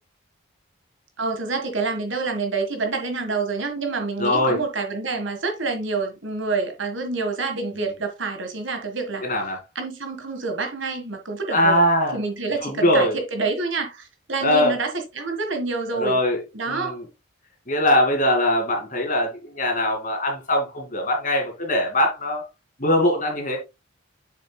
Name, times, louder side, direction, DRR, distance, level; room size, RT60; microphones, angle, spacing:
voice 1, 1.2-9.2 9.7-11.9 12.1-16.2 16.5-17.0, right 3 dB, 60° right, 1.6 m, -27 dB
voice 2, 4.2-4.6 9.2-9.6 11.5-12.2 12.6-13.2 14.4-14.8 15.9-16.4 16.7-17.0 17.7-22.4 22.8-23.6, left 1 dB, 40° left, 2.5 m, -21 dB
7.4 x 6.6 x 2.3 m
head